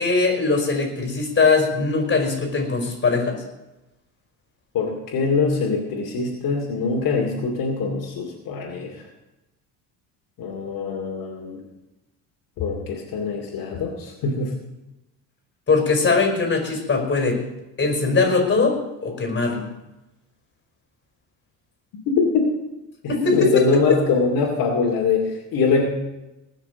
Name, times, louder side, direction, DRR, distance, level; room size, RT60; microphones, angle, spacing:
voice 1, 0.0-3.4 15.7-17.4 17.8-18.8 19.0-19.7 23.1-23.7, left 4 dB, 25° left, 2 dB, 4.8 m, -20 dB
voice 2, 4.7-9.0 10.4-11.6 12.6-14.5 22.1-22.5 23.0-25.9, left 4 dB, 55° left, -1 dB, 2.5 m, -23 dB
19.5 x 6.6 x 6.9 m, 1.0 s
cardioid pair, 120°, 39 cm